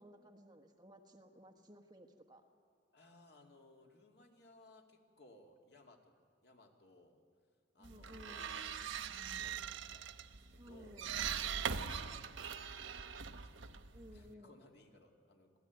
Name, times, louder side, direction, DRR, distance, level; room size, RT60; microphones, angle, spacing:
voice 1, 0.0-2.4 7.8-8.5 10.5-11.2 13.9-14.5, equal, 20° right, 5 dB, 1.4 m, -57 dB
voice 2, 2.9-7.2 7.7-8.9 9.3-11.0 11.4-15.5, left 1 dB, 55° left, 2 dB, 2.6 m, -62 dB
sound 1, 7.8-14.3, right 7 dB, 85° right, 1.0 m, -42 dB
26.0 x 16.5 x 9.4 m, 2.3 s
head